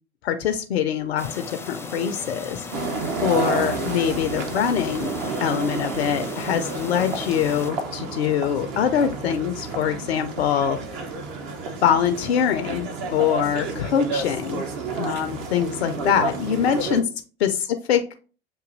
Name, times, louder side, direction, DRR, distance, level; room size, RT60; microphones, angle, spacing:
voice 1, 0.2-2.7 3.2-5.1 5.4-10.8 11.8-14.6 15.0-17.1 17.4-17.5 17.9-18.1, left 8 dB, 75° left, 6 dB, 0.5 m, -23 dB
sound 1, 1.2-7.7, left 4 dB, 10° left, 0.5 m, -37 dB
sound 2, 2.7-17.0, right 3 dB, 60° right, 0.9 m, -30 dB
6.8 x 2.7 x 2.5 m, 0.37 s
figure-of-eight pair, 75°, 32 cm